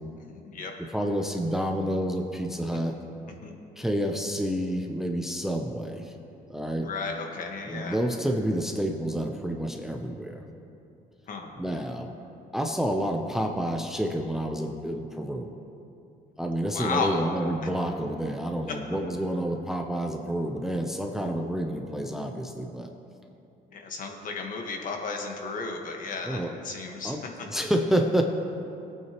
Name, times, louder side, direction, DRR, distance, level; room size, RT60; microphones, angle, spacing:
voice 1, 0.2-0.7 2.7-2.8 3.4-3.5 6.8-8.0 11.3-11.5 16.7-17.2 23.7-27.2, left 4 dB, 50° left, 2 dB, 1.5 m, -33 dB
voice 2, 0.8-3.0 3.8-6.1 6.5-6.9 7.7-10.4 11.6-12.1 12.5-15.5 16.4-22.9 26.2-26.5 27.0-28.2, right 1 dB, ahead, 3 dB, 0.6 m, -29 dB
19.0 x 8.9 x 3.0 m, 2.8 s
cardioid pair, 110°, 17 cm